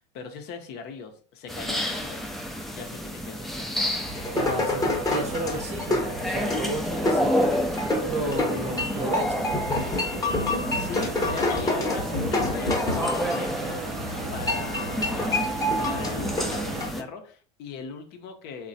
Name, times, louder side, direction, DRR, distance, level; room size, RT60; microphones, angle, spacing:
voice 1, 0.0-2.2 2.7-3.8 10.7-14.0 14.3-18.7, left 5 dB, 55° left, 5 dB, 0.6 m, -40 dB
sound 1, 1.5-17.0, left 1 dB, ahead, 0.3 m, -30 dB
sound 2, 2.8-16.8, right 7 dB, 75° right, 0.4 m, -40 dB
sound 3, 4.0-16.9, left 1 dB, 15° left, 0.8 m, -29 dB
voice 2, 4.3-7.5 8.1-9.5, right 1 dB, 30° right, 4 dB, 0.7 m, -32 dB
3.0 x 2.1 x 2.6 m, 0.43 s
hypercardioid pair, 80°, 21 cm